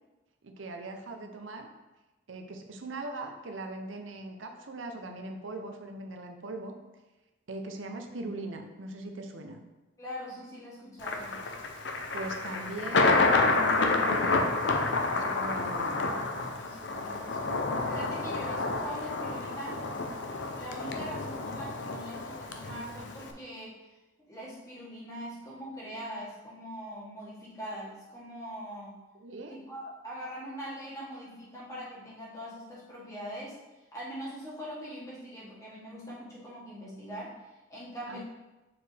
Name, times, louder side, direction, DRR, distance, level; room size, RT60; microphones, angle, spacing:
voice 1, 0.4-1.7 2.3-6.7 7.5-9.6 12.1-14.6 15.1-16.1 29.2-29.6 38.1-38.2, right 2 dB, 85° right, 4 dB, 0.7 m, -40 dB
voice 2, 10.0-11.4 16.5-19.8 20.6-23.8 24.3-29.0 29.5-33.6 33.9-38.2, equal, 20° left, -7 dB, 1.8 m, -42 dB
Thunder, 11.0-23.3, left 3 dB, 65° left, 0.6 m, -29 dB
6.8 x 4.5 x 3.4 m, 1.1 s
head